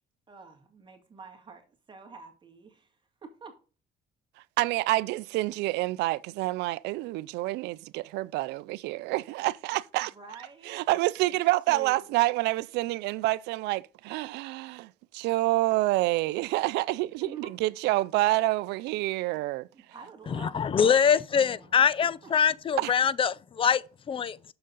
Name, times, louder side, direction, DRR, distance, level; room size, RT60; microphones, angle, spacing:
voice 1, 0.3-3.6 10.0-10.8 11.3-11.4 11.7-12.1 17.2-17.5 19.7-22.5, right 5 dB, 30° right, 2.1 m, -48 dB
voice 2, 4.6-10.1 10.7-19.7 22.8-22.9, right 19 dB, 90° right, 0.4 m, -28 dB
voice 3, 20.3-24.4, left 7 dB, 30° left, 0.5 m, -24 dB
6.8 x 6.4 x 3.8 m
cardioid pair, 110°, 17 cm